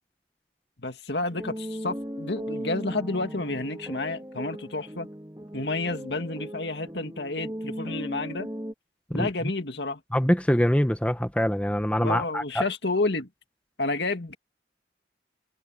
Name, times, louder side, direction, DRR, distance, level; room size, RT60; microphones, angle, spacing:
voice 1, 0.8-5.1 5.5-8.5 9.1-10.0 12.0-13.3 13.8-14.3, left 2 dB, 70° left, 2.1 m, -30 dB
sound 1, 1.3-8.7, equal, 15° right, 2.6 m, -37 dB
voice 2, 10.1-12.6, equal, 5° left, 1.3 m, -24 dB
head